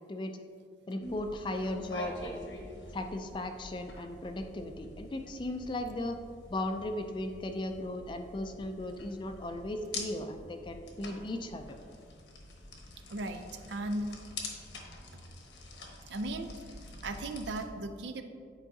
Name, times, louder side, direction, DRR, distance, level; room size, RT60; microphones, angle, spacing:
voice 1, 0.9-2.5 2.9-6.2 6.5-11.8, left 1 dB, 25° left, 6 dB, 0.3 m, -37 dB
sound 1, 1.0-17.6, left 2 dB, 80° left, 1.0 m, -46 dB
voice 2, 13.1-14.1 16.1-16.5 17.0-18.2, right 2 dB, 75° right, 7 dB, 0.5 m, -36 dB
9.8 x 4.7 x 2.7 m, 2.2 s
head